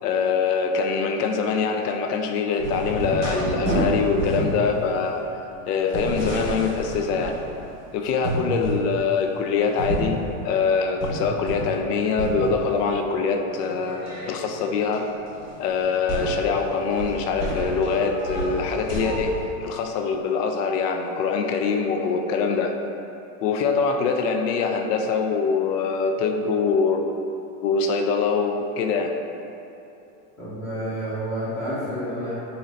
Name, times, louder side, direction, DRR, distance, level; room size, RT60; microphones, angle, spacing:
voice 1, 0.0-5.2 5.7-7.4 7.9-14.0 14.3-15.1 15.6-19.4 19.6-22.8 23.4-27.1 27.6-29.1, left 5 dB, 80° left, 4 dB, 0.6 m, -24 dB
sound 1, 2.6-7.8 8.2-8.8 9.2-11.9 12.2-13.0 13.6-19.4, right 1 dB, 15° right, 0.8 m, -30 dB
voice 2, 30.4-32.3, equal, 5° left, -12 dB, 0.5 m, -29 dB
3.9 x 2.7 x 3.1 m, 2.9 s
supercardioid pair, 165°, 46 cm